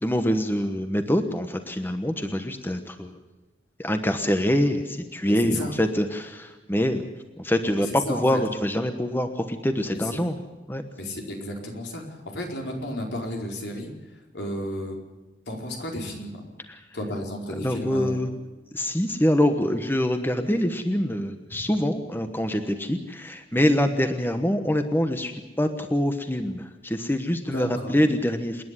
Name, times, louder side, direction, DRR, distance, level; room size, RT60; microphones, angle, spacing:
voice 1, 0.0-3.1 3.8-7.0 7.4-10.4 10.7-10.8 16.7-16.8 17.6-18.3 18.7-28.6, equal, 10° left, 7 dB, 1.1 m, -25 dB
voice 2, 5.2-5.7 7.8-8.4 9.9-10.1 11.0-13.9 14.3-15.0 15.5-16.5 16.9-18.2 27.5-27.9, left 1 dB, 80° left, 1 dB, 4.6 m, -33 dB
28.0 x 10.5 x 9.9 m, 1.1 s
head